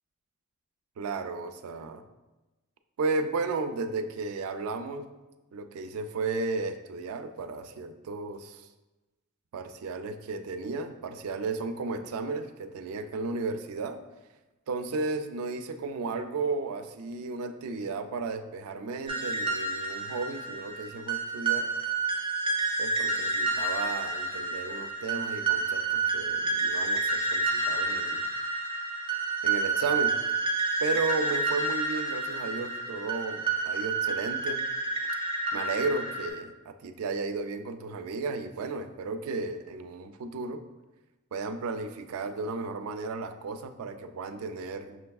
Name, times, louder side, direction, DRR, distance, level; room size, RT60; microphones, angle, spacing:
voice 1, 1.0-2.0 3.0-5.1 5.5-8.7 9.5-14.0 14.7-21.7 22.8-28.3 29.4-30.2 30.8-34.6 35.5-40.6 41.3-45.0, right 3 dB, 85° right, 8 dB, 0.4 m, -34 dB
sound 1, 19.1-36.3, right 3 dB, 25° right, 0.5 m, -29 dB
5.9 x 3.3 x 2.3 m, 1.1 s
head